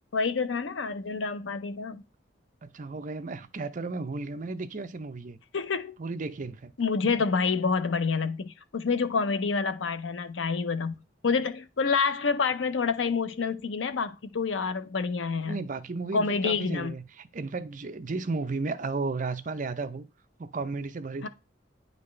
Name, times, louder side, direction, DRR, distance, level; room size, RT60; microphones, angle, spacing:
voice 1, 0.1-2.0 5.5-5.9 6.8-11.0 11.2-15.6 16.1-16.9 21.2-21.3, left 5 dB, 80° left, 0.6 m, -28 dB
voice 2, 2.6-5.4 6.0-6.7 15.5-20.1 20.4-21.3, right 3 dB, 45° right, 0.6 m, -34 dB
9.5 x 4.1 x 3.2 m
head